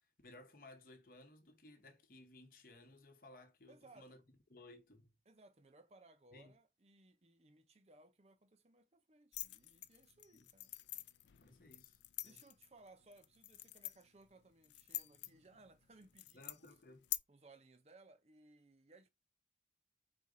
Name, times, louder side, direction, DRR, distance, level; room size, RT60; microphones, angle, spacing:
voice 1, 0.2-4.2 4.5-5.1 6.3-6.5 10.3-10.5 11.4-12.4 16.3-17.0, left 2 dB, 50° left, 0.9 m, -59 dB
voice 2, 3.7-4.2 5.3-11.1 12.2-16.7 17.3-19.1, right 2 dB, 35° right, 0.6 m, -64 dB
sound 1, 9.3-17.2, left 15 dB, 80° left, 0.4 m, -48 dB
4.2 x 2.5 x 4.8 m
head